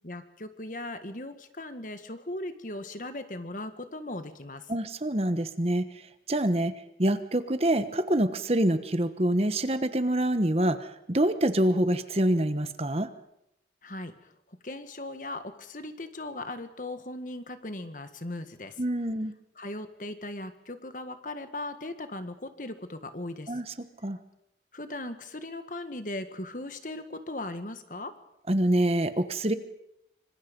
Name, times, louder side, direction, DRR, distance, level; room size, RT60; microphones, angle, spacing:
voice 1, 0.0-4.7 13.8-18.8 19.6-23.6 24.7-28.2, left 2 dB, 45° left, 9 dB, 1.8 m, -38 dB
voice 2, 4.7-5.9 6.3-6.7 7.0-13.1 18.8-19.3 23.5-23.6 24.0-24.2 28.5-29.5, right 1 dB, 35° right, 11 dB, 1.2 m, -26 dB
25.5 x 25.5 x 5.4 m, 0.81 s
head